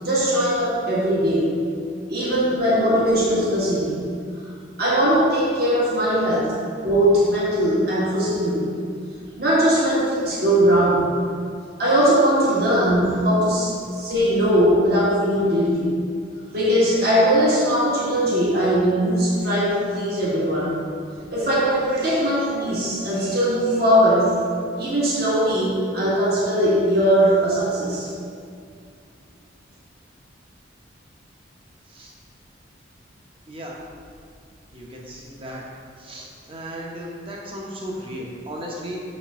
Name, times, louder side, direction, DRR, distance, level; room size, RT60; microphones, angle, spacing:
voice 1, 0.0-1.5 2.1-4.0 4.8-6.5 6.8-8.7 9.4-11.0 11.8-15.9 16.5-20.7 21.3-24.4 24.8-28.1, equal, 55° right, -7 dB, 1.6 m, -20 dB
voice 2, 2.2-2.7 9.1-9.4 21.2-21.3 31.9-32.1 33.5-33.8 34.7-35.6 36.0-39.0, equal, 30° right, -3 dB, 0.9 m, -36 dB
6.6 x 5.3 x 3.7 m, 2.2 s
head